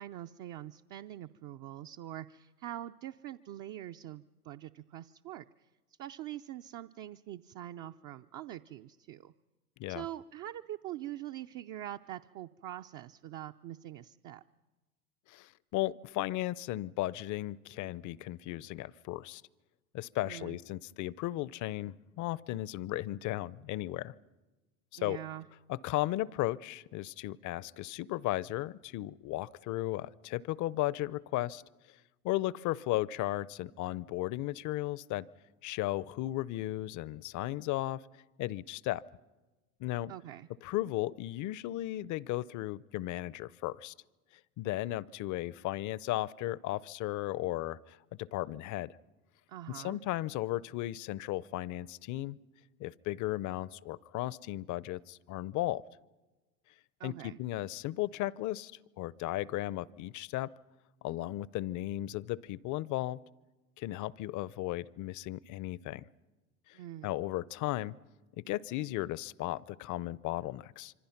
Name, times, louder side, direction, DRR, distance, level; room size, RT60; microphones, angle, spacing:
voice 1, 0.0-5.4 6.0-9.3 9.9-14.4 20.2-20.6 25.0-25.5 40.1-40.5 49.5-50.0 57.0-57.4 66.7-67.1, right 13 dB, 45° right, 7 dB, 0.7 m, -44 dB
voice 2, 15.3-19.4 19.9-24.1 24.9-25.2 25.7-31.6 32.2-35.3 35.6-38.0 38.4-39.0 39.8-40.1 40.6-43.9 44.6-49.0 49.7-52.4 52.8-55.8 57.0-58.7 59.0-60.5 61.0-63.2 63.8-66.1 66.7-66.8 67.0-67.9 68.4-70.9, left 16 dB, 40° left, 22 dB, 0.7 m, -35 dB
26.0 x 25.0 x 5.9 m, 1.2 s
hypercardioid pair, 85°, 45 cm